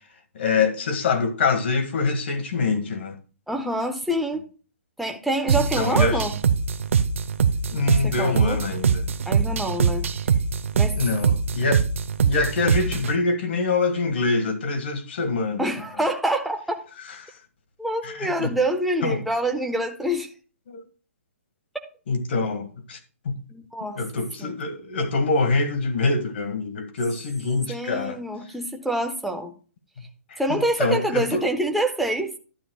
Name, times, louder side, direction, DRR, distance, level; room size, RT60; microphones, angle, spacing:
voice 1, 0.3-3.1 5.6-6.2 7.7-9.0 10.9-11.8 12.2-15.7 17.2-17.3 18.0-18.5 19.0-19.2 20.7-20.8 22.1-23.0 23.2-23.4 24.0-28.2 30.3-31.5, left 3 dB, 50° left, 1.6 m, -25 dB
voice 2, 3.5-4.5 5.0-6.3 8.0-8.6 9.3-10.0 10.7-11.0 15.6-16.8 17.8-20.3 23.5-24.0 24.4-24.5 27.7-29.5 30.4-32.3, right 1 dB, ahead, 0.5 m, -26 dB
sound 1, 5.5-13.1, right 6 dB, 65° right, 0.7 m, -23 dB
12.0 x 9.4 x 2.3 m
hypercardioid pair, 165°, 8 cm